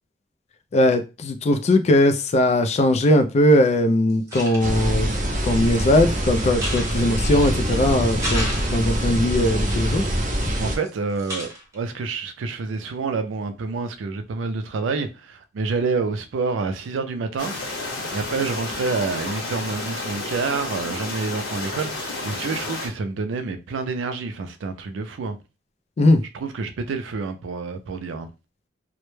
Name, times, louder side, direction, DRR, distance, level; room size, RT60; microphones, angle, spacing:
voice 1, 0.7-5.1 5.4-10.1 26.0-26.2, left 1 dB, 35° left, 0.3 m, -19 dB
sound 1, 3.5-3.6 4.1-4.9 5.6-6.1 6.5-7.7 8.0-9.1 9.6-10.9 11.1-11.7, equal, 20° right, 0.8 m, -34 dB
sound 2, 4.6-10.8, equal, 45° right, 0.6 m, -24 dB
voice 2, 10.6-17.5 18.1-25.4 26.3-28.3, right 4 dB, 90° right, 0.4 m, -28 dB
sound 3, 17.4-22.9, left 2 dB, 70° left, 0.9 m, -31 dB
2.1 x 2.0 x 3.0 m
head